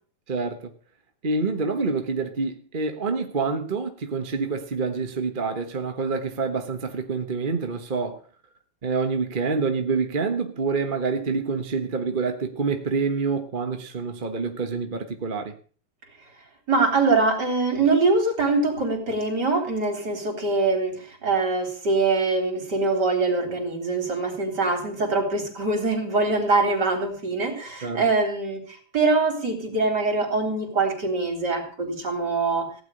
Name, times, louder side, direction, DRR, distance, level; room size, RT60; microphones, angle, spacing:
voice 1, 0.3-0.7 1.2-8.2 8.8-15.5 27.8-28.0, right 4 dB, 30° right, 1.1 m, -27 dB
voice 2, 16.7-28.6 28.9-32.7, right 3 dB, 50° right, 4.1 m, -23 dB
16.0 x 6.0 x 9.8 m
omnidirectional pair, 2.3 m